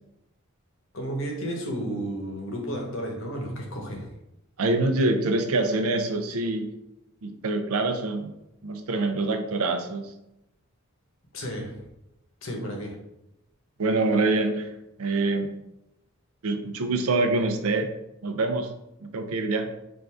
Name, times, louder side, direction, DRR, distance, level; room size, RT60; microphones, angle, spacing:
voice 1, 0.9-4.1 11.3-11.8 12.4-13.0, equal, 65° left, 1 dB, 1.0 m, -32 dB
voice 2, 4.6-6.7 7.2-8.3 8.6-10.1 13.8-14.7 15.0-15.5 16.4-17.9 18.2-18.7 19.0-19.7, right 2 dB, 85° right, 6 dB, 0.6 m, -25 dB
4.5 x 2.6 x 3.4 m, 0.87 s
head